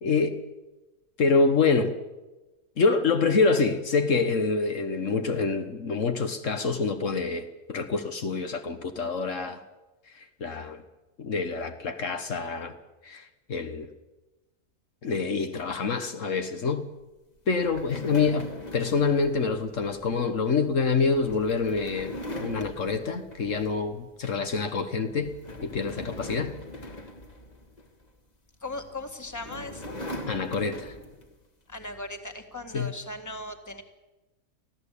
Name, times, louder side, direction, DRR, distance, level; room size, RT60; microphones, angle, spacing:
voice 1, 0.0-0.4 1.2-2.0 2.8-9.6 10.1-10.8 11.2-12.7 13.0-13.9 15.0-16.9 17.5-25.3 25.6-26.6 30.3-30.9 32.7-32.9, left 4 dB, 65° left, 7 dB, 1.6 m, -26 dB
sound 1, 17.5-24.0 24.4-24.7 25.1-28.1 28.9-31.4, left 1 dB, 30° left, 1.9 m, -41 dB
voice 2, 28.6-30.0 31.7-33.8, left 2 dB, 15° left, 6 dB, 1.9 m, -38 dB
24.0 x 15.5 x 8.5 m, 1.1 s
omnidirectional pair, 1.4 m